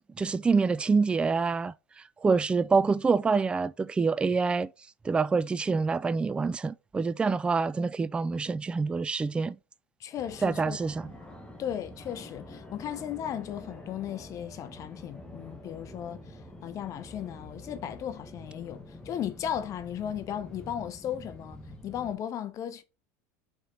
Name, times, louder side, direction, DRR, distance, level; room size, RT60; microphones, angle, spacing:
voice 1, 0.2-4.7 5.0-9.6 10.4-11.1, right 4 dB, 10° right, 0.3 m, -26 dB
voice 2, 10.0-11.1 11.6-16.2 16.6-21.6 21.8-22.8, left 10 dB, 40° left, 0.8 m, -36 dB
Fixed-wing aircraft airplane, 10.2-22.1, left 1 dB, 10° left, 1.5 m, -47 dB
4.7 x 4.3 x 5.1 m
supercardioid pair, 110°, 8 cm